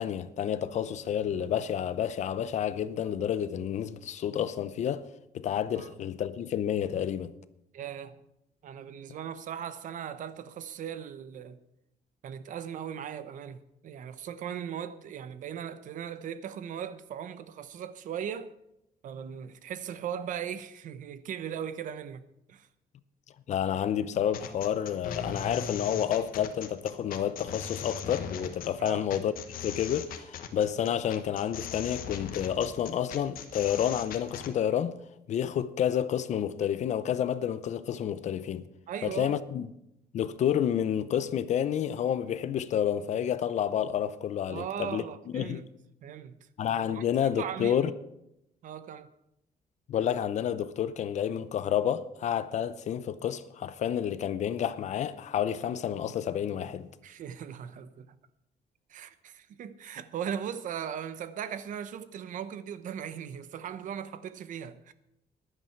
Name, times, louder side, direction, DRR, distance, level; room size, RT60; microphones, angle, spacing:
voice 1, 0.0-5.0 5.3-7.3 23.5-29.3 29.6-35.0 35.3-38.6 39.0-39.7 40.1-45.0 45.3-45.6 46.6-47.9 49.9-56.9, left 9 dB, 45° left, 0.6 m, -29 dB
voice 2, 7.7-8.2 8.6-11.6 12.2-18.5 19.0-22.2 22.5-22.7 28.8-29.1 38.9-39.4 44.5-45.7 46.0-46.4 46.9-47.0 47.4-47.9 48.6-49.1 57.0-58.2 58.9-64.9, right 8 dB, 50° right, 0.8 m, -38 dB
sound 1, 24.3-34.5, left 7 dB, 60° left, 1.3 m, -39 dB
15.0 x 11.5 x 4.5 m
cardioid pair, 180°, 16 cm